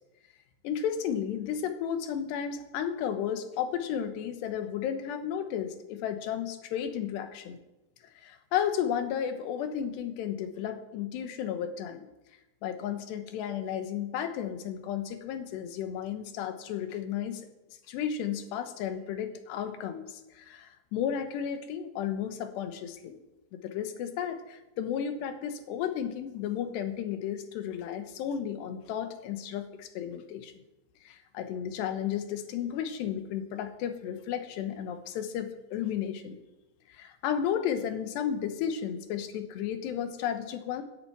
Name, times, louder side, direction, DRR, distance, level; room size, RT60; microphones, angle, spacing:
voice 1, 0.6-7.6 8.2-12.1 12.6-17.4 17.9-23.2 23.5-30.5 31.0-36.4 36.9-40.8, left 9 dB, 75° left, 8 dB, 3.1 m, -33 dB
10.5 x 9.8 x 8.8 m, 0.98 s
omnidirectional pair, 5.3 m